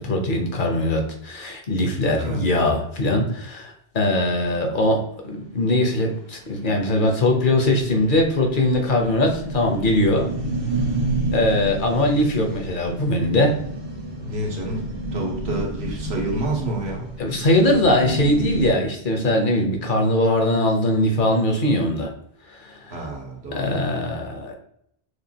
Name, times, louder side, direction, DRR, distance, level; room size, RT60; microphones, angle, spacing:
voice 1, 0.0-10.3 11.3-13.5 17.2-22.1 22.5-23.0 23.5-24.6, left 1 dB, 55° left, 2 dB, 1.0 m, -21 dB
sound 1, 6.0-6.1 6.4-6.5 6.8-6.9 7.2-18.7, right 2 dB, 65° right, 1.2 m, -30 dB
voice 2, 14.2-17.1 22.9-23.8, right 2 dB, 85° right, 0 dB, 1.3 m, -29 dB
6.3 x 2.3 x 2.8 m, 0.72 s
omnidirectional pair, 1.0 m